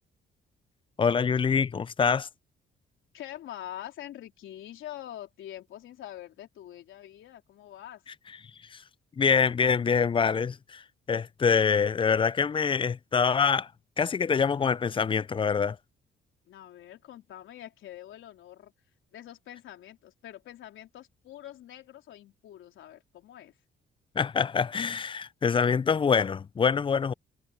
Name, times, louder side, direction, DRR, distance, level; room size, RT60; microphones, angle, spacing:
voice 1, 1.0-2.3 8.7-8.8 9.2-10.8 11.1-13.7 14.0-15.8 24.2-27.1, left 6 dB, 25° left, 0.4 m, -25 dB
voice 2, 3.1-8.0 16.4-18.7 19.1-23.5, left 12 dB, 80° left, 3.8 m, -45 dB
cardioid pair, 90°, 20 cm